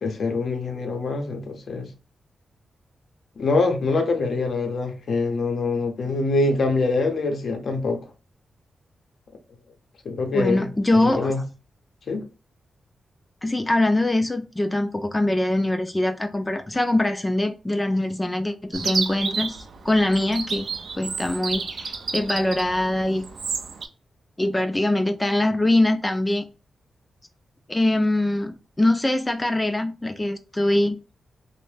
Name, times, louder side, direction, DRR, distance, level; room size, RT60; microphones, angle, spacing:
voice 1, 0.0-1.9 3.4-8.0 10.0-10.7 11.0-11.4 12.1-12.3, left 3 dB, 65° left, 0.6 m, -24 dB
voice 2, 10.3-11.3 13.4-20.7 21.0-23.3 24.4-26.4 27.7-31.0, left 1 dB, 15° left, 0.3 m, -23 dB
Chirp tweet, 18.7-23.9, right 4 dB, 65° right, 0.4 m, -31 dB
2.6 x 2.0 x 3.3 m
cardioid pair, 95°, 0 cm